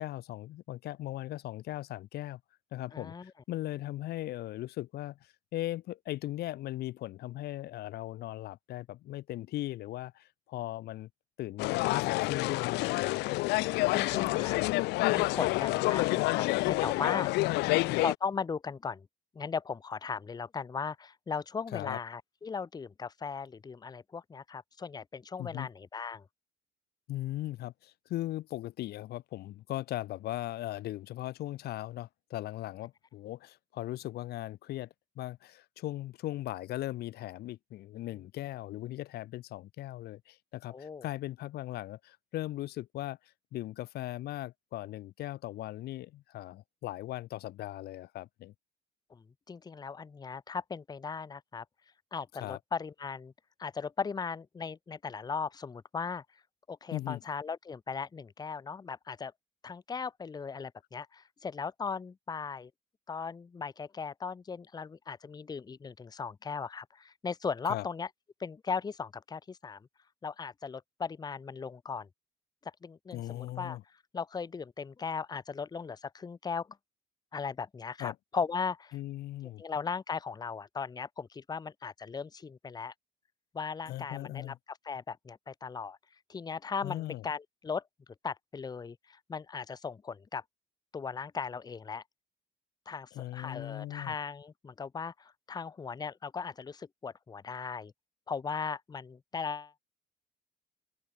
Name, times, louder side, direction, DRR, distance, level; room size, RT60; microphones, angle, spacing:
voice 1, 0.0-2.4 2.7-11.1 11.4-13.2 17.4-18.0 21.7-22.0 25.4-25.7 27.1-34.9 35.2-48.5 52.3-52.6 56.9-57.2 67.6-67.8 73.1-73.8 78.0-78.1 78.9-79.6 83.9-84.6 86.8-87.3 93.1-94.1, left 15 dB, 70° left, 1.1 m, -38 dB
voice 2, 2.9-3.3 13.9-14.6 15.1-17.5 18.0-19.1 19.3-26.2 40.7-41.1 49.1-51.6 52.1-53.3 53.6-56.2 56.7-59.3 59.6-62.7 63.1-68.1 68.4-69.8 70.2-72.1 72.8-73.8 74.1-76.7 77.3-79.0 79.6-82.9 83.5-86.0 86.3-87.8 88.2-90.4 90.9-92.0 92.9-97.9 98.3-99.8, left 5 dB, 25° left, 1.0 m, -38 dB
sound 1, 11.6-18.1, left 22 dB, 90° left, 0.6 m, -28 dB
open air
cardioid pair, 110°, 17 cm